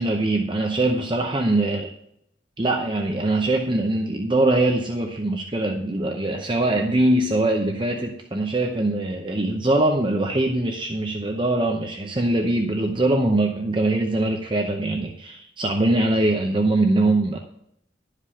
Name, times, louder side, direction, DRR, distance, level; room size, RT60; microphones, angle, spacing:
voice 1, 0.0-1.9 2.6-17.4, right 2 dB, 30° right, 2 dB, 0.7 m, -22 dB
11.5 x 5.0 x 5.7 m, 0.75 s
head